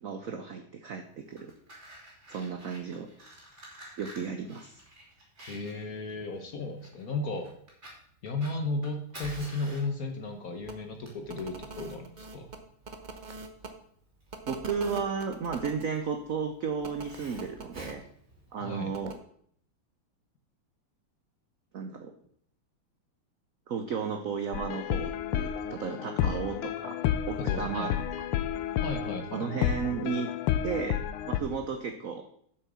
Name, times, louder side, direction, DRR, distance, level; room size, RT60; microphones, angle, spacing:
voice 1, 0.0-1.5 2.3-3.1 4.0-4.8 14.4-18.0 18.5-19.2 21.7-22.1 23.7-27.9 29.3-30.3 30.6-31.0 31.3-32.3, right 6 dB, 70° right, 6 dB, 0.8 m, -34 dB
Fire, 1.2-18.9, right 1 dB, 30° right, 3.2 m, -50 dB
voice 2, 5.5-7.5 8.2-12.5 18.6-18.9 27.4-28.0 28.8-29.7, left 2 dB, 55° left, 5 dB, 1.1 m, -35 dB
sound 1, 10.6-10.7 11.2-13.7 14.3-15.8 16.8-17.9 18.9-19.1, right 3 dB, 90° right, 0.4 m, -42 dB
sound 2, 24.5-31.4, left 10 dB, 85° left, 1.6 m, -31 dB
7.7 x 6.4 x 6.2 m, 0.65 s
omnidirectional pair, 2.4 m